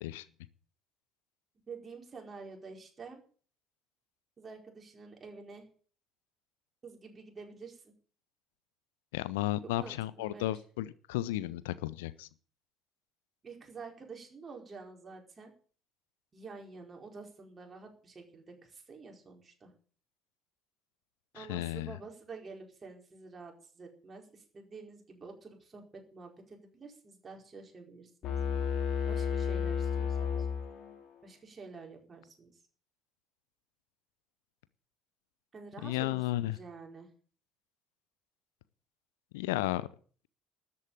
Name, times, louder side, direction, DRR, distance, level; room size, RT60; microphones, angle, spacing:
voice 1, 1.7-3.2 4.4-5.7 6.8-7.9 9.6-10.5 13.4-15.5 16.3-19.7 21.3-28.4 29.1-30.5 31.2-32.5 35.5-37.1, right 4 dB, 30° right, 2 dB, 4.6 m, -49 dB
voice 2, 9.1-12.3 21.3-22.0 35.8-36.6 39.3-39.9, left 15 dB, 65° left, 18 dB, 0.6 m, -33 dB
sound 1, 28.2-31.2, left 7 dB, 50° left, 3.1 m, -32 dB
13.0 x 8.5 x 8.9 m, 0.43 s
figure-of-eight pair, 55°, 0 cm